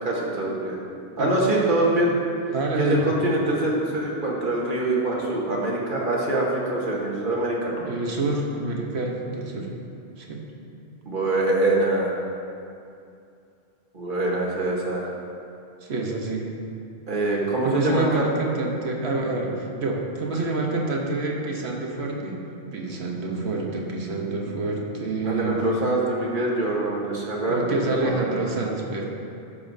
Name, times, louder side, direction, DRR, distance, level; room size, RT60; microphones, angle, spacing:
voice 1, 0.0-0.8 1.2-2.1 2.8-7.9 11.0-12.1 13.9-15.1 17.1-18.3 25.2-28.3, right 2 dB, 50° right, -4 dB, 1.5 m, -24 dB
voice 2, 2.5-3.0 7.9-9.7 10.2-10.4 15.8-16.5 17.6-22.4 22.7-25.6 27.5-29.1, right 2 dB, 85° right, 0 dB, 1.3 m, -27 dB
14.0 x 6.8 x 2.7 m, 2.5 s
omnidirectional pair, 1.1 m